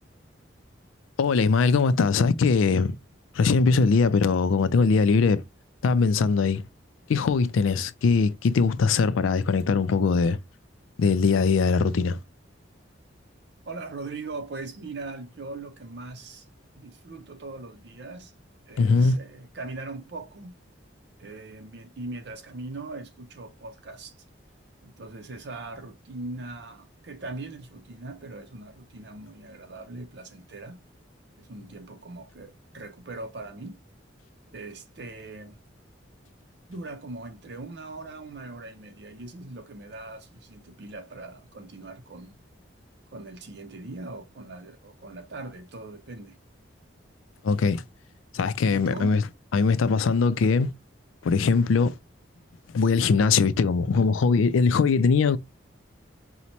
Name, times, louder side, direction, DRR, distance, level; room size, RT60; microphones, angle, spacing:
voice 1, 1.2-3.0 3.3-5.4 5.8-6.6 7.1-10.4 11.0-12.2 18.8-19.2 47.4-47.8 48.3-49.2 49.5-50.7 51.2-52.0 52.7-55.4, left 4 dB, 90° left, 0.4 m, -21 dB
voice 2, 13.7-16.5 16.7-18.3 18.7-20.6 21.2-24.2 24.8-30.8 31.4-33.8 34.5-35.6 36.7-42.4 43.1-46.4 48.7-49.1, right 2 dB, 55° right, 0.5 m, -40 dB
5.1 x 2.1 x 2.8 m
head